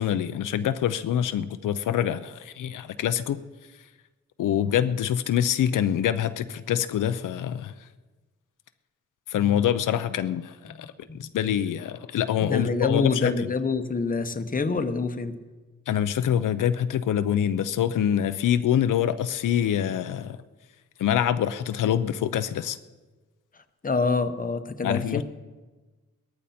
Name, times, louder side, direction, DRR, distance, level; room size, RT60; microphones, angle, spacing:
voice 1, 0.0-3.4 4.4-7.7 9.3-10.9 11.2-13.3 15.9-20.4 21.0-22.8 24.8-25.2, left 10 dB, 85° left, 11 dB, 0.6 m, -25 dB
voice 2, 10.7-11.3 12.4-15.3 23.8-25.2, left 4 dB, 25° left, 8 dB, 0.9 m, -27 dB
18.5 x 14.0 x 4.3 m, 1.3 s
wide cardioid pair, 105°, 30 cm